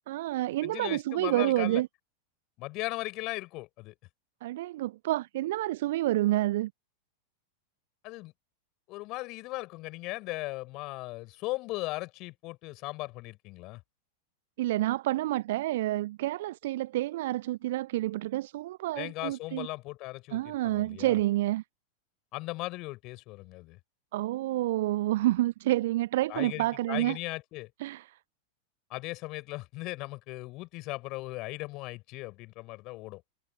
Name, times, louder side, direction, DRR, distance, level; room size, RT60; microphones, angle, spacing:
voice 1, 0.1-1.9 4.4-6.7 14.6-19.7 20.3-21.6 24.1-27.2 27.8-28.2, right 16 dB, 55° right, 0.7 m, -29 dB
voice 2, 0.6-1.8 2.6-3.9 8.0-8.3 8.9-13.8 19.0-21.2 22.3-23.8 26.3-27.7 28.9-33.2, left 21 dB, 40° left, 6.8 m, -38 dB
figure-of-eight pair, 90°, 0 cm